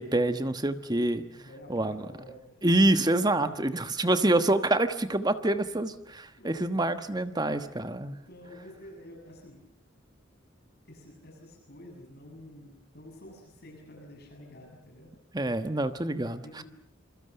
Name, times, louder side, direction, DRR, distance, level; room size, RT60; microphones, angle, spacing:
voice 1, 0.0-1.2 1.7-2.0 2.6-8.1 15.3-16.6, right 1 dB, 20° right, 10 dB, 1.2 m, -26 dB
voice 2, 1.3-2.6 3.4-3.8 6.4-7.0 8.1-9.6 10.9-15.1 16.4-16.6, left 1 dB, 55° left, 2 dB, 7.4 m, -49 dB
27.0 x 23.5 x 6.8 m, 0.71 s
head